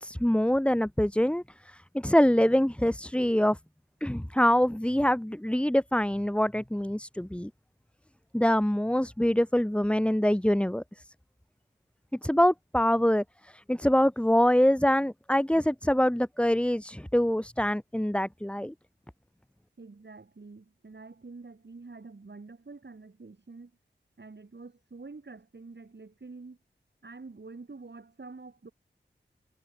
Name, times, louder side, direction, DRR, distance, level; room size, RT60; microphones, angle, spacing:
voice 1, 0.0-3.6 4.0-7.5 8.3-10.8 12.2-18.7, equal, 5° left, 1.2 m, -25 dB
voice 2, 19.8-23.7 24.2-26.6 27.0-28.7, right 3 dB, 65° right, 6.5 m, -47 dB
wide cardioid pair, 70°, 19 cm